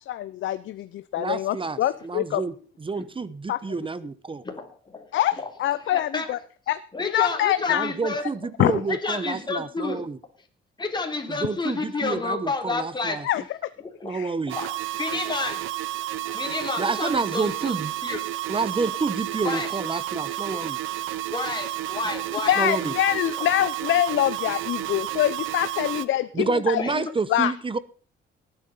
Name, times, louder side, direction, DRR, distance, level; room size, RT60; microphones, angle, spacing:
voice 1, 0.1-2.4 3.5-3.6 5.1-6.4 6.7-7.9 8.6-8.8 13.2-13.4 14.1-14.3 22.4-27.0 27.3-27.5, left 13 dB, 75° left, 14 dB, 0.7 m, -25 dB
voice 2, 1.2-2.5 2.8-4.4 7.7-10.2 11.3-13.3 14.0-14.6 16.8-17.9 18.5-20.8 22.6-22.9 26.3-27.8, right 4 dB, 25° right, 16 dB, 1.0 m, -28 dB
voice 3, 4.4-5.1 5.9-6.3 6.9-8.2 8.9-10.0 10.8-13.2 14.0-14.1 14.5-15.7 16.3-17.8 18.0-18.2 19.4-19.7 21.3-22.6 26.4-26.5 26.8-26.9, left 3 dB, 20° left, 2 dB, 3.6 m, -30 dB
sound 1, 14.5-26.1, right 14 dB, 85° right, 0.9 m, -31 dB
19.0 x 9.0 x 5.6 m, 0.41 s
cardioid pair, 90°, 20 cm